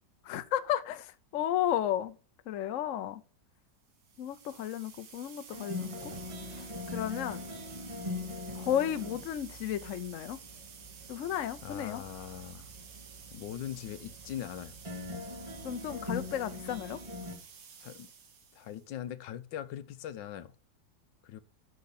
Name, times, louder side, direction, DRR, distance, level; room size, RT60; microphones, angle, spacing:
voice 1, 0.2-2.1 2.5-3.2 4.2-6.1 6.6-7.4 8.5-10.4 11.1-12.0 15.6-17.0, left 11 dB, 60° left, 0.9 m, -33 dB
sound 1, 3.9-18.9, right 6 dB, 80° right, 2.1 m, -52 dB
sound 2, 5.5-17.3, left 2 dB, 15° right, 1.9 m, -42 dB
voice 2, 11.6-12.7 13.3-14.7 17.8-18.1 18.5-20.5 21.2-21.4, left 11 dB, 80° left, 1.4 m, -41 dB
8.1 x 6.4 x 7.0 m
omnidirectional pair, 2.0 m